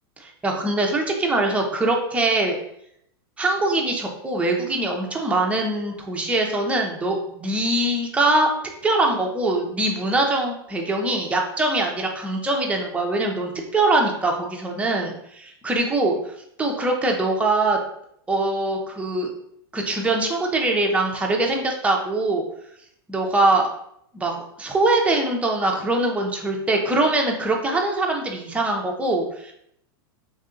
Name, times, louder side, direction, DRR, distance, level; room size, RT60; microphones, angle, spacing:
voice 1, 0.2-2.6 3.4-8.5 8.8-16.2 16.6-17.8 18.3-19.3 19.7-22.4 23.1-23.7 24.1-29.5, right 2 dB, 10° right, 0 dB, 0.7 m, -22 dB
3.3 x 2.6 x 3.8 m, 0.72 s
hypercardioid pair, 120°, 13 cm